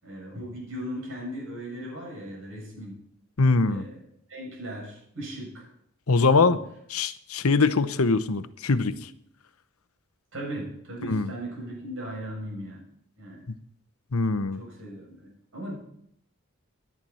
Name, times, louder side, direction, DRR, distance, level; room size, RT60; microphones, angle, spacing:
voice 1, 0.0-3.0 3.6-4.0 4.3-5.6 6.2-6.6 10.3-12.8 13.2-13.5 14.6-15.8, equal, 65° right, -2 dB, 7.5 m, -38 dB
voice 2, 3.4-3.8 6.1-6.6 6.9-9.1 11.0-11.3 14.1-14.6, left 3 dB, 80° left, 12 dB, 0.8 m, -22 dB
17.0 x 10.5 x 4.3 m, 0.70 s
head